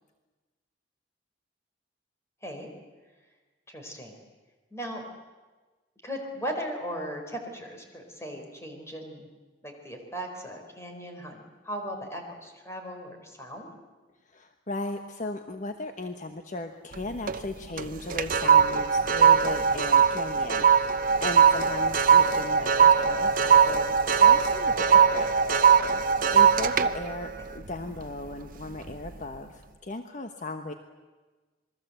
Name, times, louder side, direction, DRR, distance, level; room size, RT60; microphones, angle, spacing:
voice 1, 3.7-4.2 4.7-5.0 6.0-9.3 9.6-13.7 27.4-27.5, equal, 15° left, 3 dB, 4.5 m, -37 dB
voice 2, 14.3-24.9 25.1-25.3 26.3-30.7, left 2 dB, 45° left, 6 dB, 1.2 m, -37 dB
sound 1, 16.9-17.5 17.8-28.3 28.8-29.1, right 7 dB, 50° right, 0.9 m, -21 dB
sound 2, 21.3-26.4, left 3 dB, 70° left, 2.5 m, -38 dB
27.5 x 21.5 x 8.0 m, 1.3 s
head